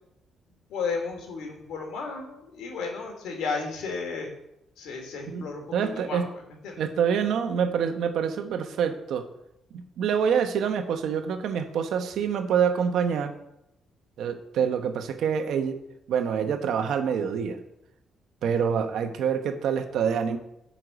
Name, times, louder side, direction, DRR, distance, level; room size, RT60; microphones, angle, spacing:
voice 1, 0.7-4.3 4.8-5.6 5.9-6.8, left 4 dB, 85° left, 2 dB, 3.1 m, -33 dB
voice 2, 5.7-6.3 6.8-9.3 9.7-13.3 14.2-15.8 16.1-17.6 18.4-20.4, right 7 dB, 75° right, 7 dB, 1.2 m, -26 dB
11.0 x 5.8 x 8.1 m, 0.83 s
cardioid pair, 90°, 0 cm